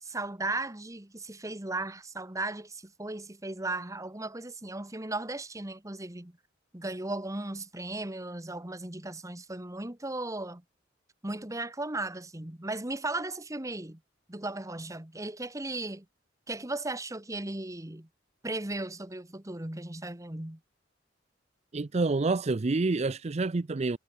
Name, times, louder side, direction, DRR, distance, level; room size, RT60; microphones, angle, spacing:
voice 1, 0.0-6.4 6.7-10.6 11.2-14.0 14.3-16.0 16.5-18.1 18.4-20.6, right 2 dB, 20° right, 1.5 m, -36 dB
voice 2, 21.7-24.0, right 3 dB, 35° right, 0.5 m, -28 dB
head